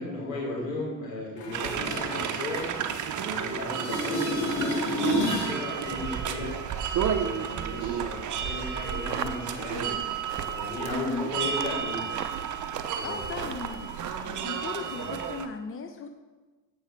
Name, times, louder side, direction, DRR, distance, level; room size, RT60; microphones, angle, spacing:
voice 1, 0.0-2.7 3.2-6.5 7.1-9.9 10.5-12.1 13.0-13.5 14.9-15.1, left 2 dB, 80° left, -4 dB, 3.5 m, -36 dB
sound 1, 1.4-3.4 3.7-5.6 11.3-11.4, left 2 dB, 55° left, 2.1 m, -31 dB
sound 2, 1.5-15.5, right 8 dB, 40° right, 0.9 m, -32 dB
sound 3, 8.9-14.4, right 7 dB, 90° right, 0.6 m, -39 dB
voice 2, 10.9-11.3 13.0-13.9 14.2-16.1, left 4 dB, 25° left, 7 dB, 0.9 m, -36 dB
16.5 x 6.2 x 3.6 m, 1.2 s
figure-of-eight pair, 50°, 48 cm